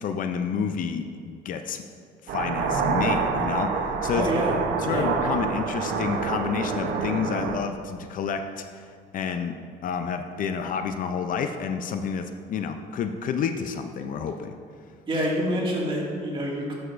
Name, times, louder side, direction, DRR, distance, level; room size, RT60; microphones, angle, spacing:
voice 1, 0.0-1.8 2.2-4.2 4.8-9.6 9.8-14.6, left 6 dB, 55° left, 7 dB, 0.5 m, -29 dB
sound 1, 2.3-7.6, right 5 dB, 75° right, 0.8 m, -27 dB
voice 2, 4.1-4.5 4.8-5.1 15.1-16.7, equal, 30° right, -4 dB, 2.0 m, -27 dB
11.0 x 6.4 x 2.5 m, 2.2 s
cardioid pair, 110°, 17 cm